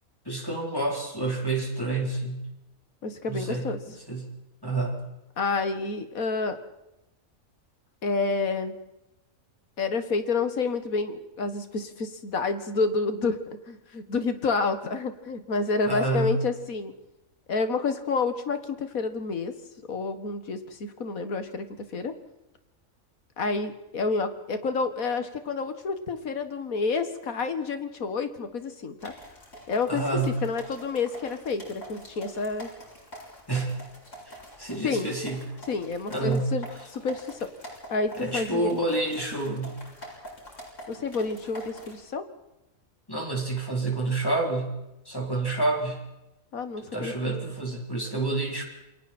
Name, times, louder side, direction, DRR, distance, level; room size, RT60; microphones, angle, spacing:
voice 1, 0.3-2.5 3.3-3.7 4.1-4.3 4.6-5.0 15.9-16.3 29.9-30.3 33.5-33.8 34.3-35.4 36.1-36.5 38.2-39.8 43.1-44.7 45.1-46.0 46.9-48.6, right 2 dB, 15° left, 0 dB, 3.9 m, -28 dB
voice 2, 3.0-3.8 5.4-6.6 8.0-8.7 9.8-13.4 13.7-16.9 17.5-19.6 19.9-22.2 23.4-29.1 29.7-30.0 30.4-32.7 34.8-35.1 35.7-37.5 37.9-38.8 40.9-42.2 46.5-47.1, left 4 dB, 90° left, 9 dB, 2.1 m, -29 dB
sound 1, 29.0-42.0, equal, 65° left, 5.9 m, -46 dB
28.5 x 22.5 x 4.4 m, 0.94 s
omnidirectional pair, 1.4 m